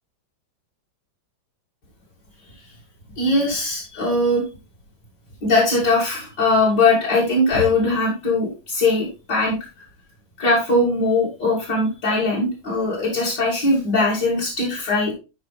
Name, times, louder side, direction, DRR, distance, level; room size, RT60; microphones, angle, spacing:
voice 1, 3.2-4.4 5.4-9.6 10.4-15.1, left 2 dB, 60° left, -6 dB, 3.3 m, -20 dB
13.0 x 4.6 x 3.4 m, 0.28 s
omnidirectional pair, 2.1 m